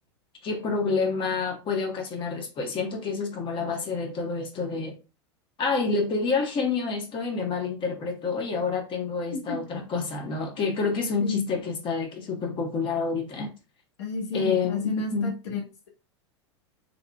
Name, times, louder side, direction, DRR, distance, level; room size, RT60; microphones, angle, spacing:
voice 1, 0.4-5.0 5.6-13.5 14.3-15.3, left 4 dB, 35° left, 1.3 m, -28 dB
voice 2, 14.0-15.9, left 3 dB, 75° left, 1.2 m, -31 dB
3.7 x 3.6 x 2.3 m
hypercardioid pair, 100°, 15 cm